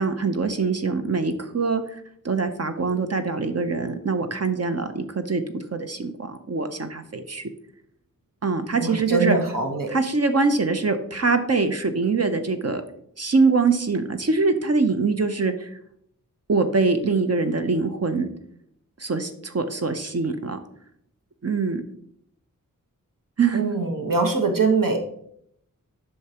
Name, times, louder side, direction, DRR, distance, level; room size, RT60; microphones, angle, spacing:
voice 1, 0.0-1.8 2.2-5.4 5.7-7.5 8.4-9.4 9.9-12.8 13.2-15.7 16.5-18.3 19.0-20.6 21.4-21.8 23.4-23.7, right 4 dB, 50° right, 8 dB, 0.7 m, -23 dB
voice 2, 8.7-9.9 23.5-25.0, right 4 dB, 75° right, 3 dB, 1.3 m, -23 dB
8.0 x 5.7 x 2.9 m, 0.69 s
wide cardioid pair, 85°, 33 cm